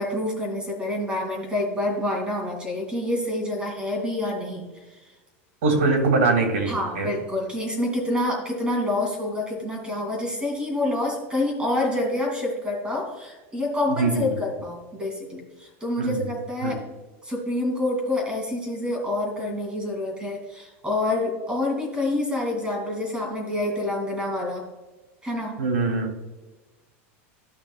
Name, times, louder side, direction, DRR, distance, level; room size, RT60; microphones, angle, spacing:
voice 1, 0.0-4.6 4.9-5.0 6.7-16.8 17.2-24.7 25.2-25.5, left 1 dB, 15° right, 0 dB, 2.6 m, -27 dB
voice 2, 5.6-7.1 14.0-14.3 16.0-16.3 16.6-16.8 25.6-26.2, right 3 dB, 85° right, 3 dB, 2.3 m, -22 dB
13.0 x 5.9 x 2.4 m, 1.2 s
supercardioid pair, 120°, 7 cm